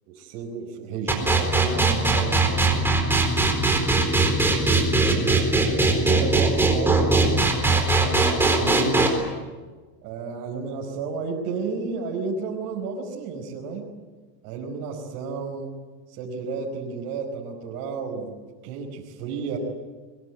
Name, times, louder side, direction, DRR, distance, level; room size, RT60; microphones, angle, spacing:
voice 1, 0.2-2.9 5.1-9.2 10.0-13.9 14.4-15.7 16.1-18.3 18.6-19.6, right 4 dB, 45° right, -2 dB, 5.2 m, -32 dB
sound 1, 1.1-9.1, right 3 dB, 5° right, 4.2 m, -19 dB
23.0 x 22.0 x 9.6 m, 1.3 s
supercardioid pair, 155°, 49 cm